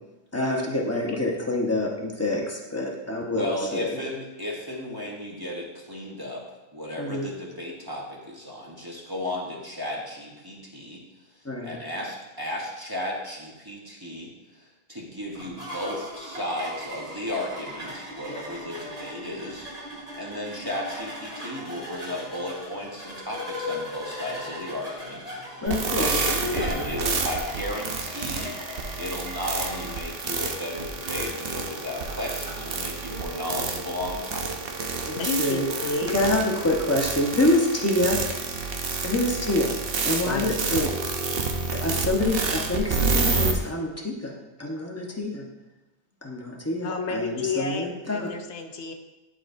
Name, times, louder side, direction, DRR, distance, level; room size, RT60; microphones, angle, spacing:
voice 1, 0.3-4.1 7.0-7.3 11.4-11.8 25.6-26.1 35.1-35.6 36.1-38.2 39.0-39.7 40.0-40.9 41.7-45.5 46.2-48.3, left 1 dB, 15° left, -1 dB, 0.9 m, -26 dB
voice 2, 3.1-6.4 6.7-11.0 11.6-25.7 25.9-26.2 26.5-28.5 29.0-34.6, left 1 dB, 20° right, -3 dB, 1.0 m, -34 dB
sound 1, 15.3-33.1, equal, 5° right, 2.2 m, -38 dB
sound 2, 25.7-43.5, right 4 dB, 60° right, 0.9 m, -29 dB
voice 3, 26.1-27.2 35.1-36.2 40.3-40.9 46.8-48.9, left 4 dB, 75° left, 6 dB, 0.9 m, -31 dB
sound 3, 33.1-37.5, right 4 dB, 80° right, 1.1 m, -39 dB
11.0 x 4.8 x 2.6 m, 1.1 s
omnidirectional pair, 1.2 m